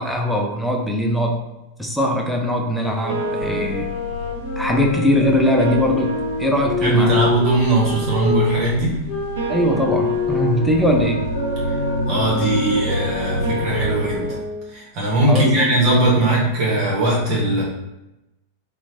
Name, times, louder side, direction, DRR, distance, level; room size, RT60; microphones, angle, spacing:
voice 1, 0.0-1.4 1.8-3.9 4.6-7.2 9.5-11.3 15.3-15.7, left 1 dB, ahead, 0 dB, 0.6 m, -21 dB
sound 1, 2.9-8.5 9.1-14.7, left 3 dB, 35° left, 0.8 m, -27 dB
sound 2, 3.1-14.4, right 1 dB, 60° right, 0.7 m, -34 dB
sound 3, 3.4-14.3, equal, 85° left, 0.6 m, -30 dB
voice 2, 6.8-8.9 12.1-14.2 14.7-17.6, right 2 dB, 40° right, -5 dB, 1.2 m, -19 dB
4.4 x 2.4 x 2.7 m, 0.96 s
figure-of-eight pair, 90°, 0 cm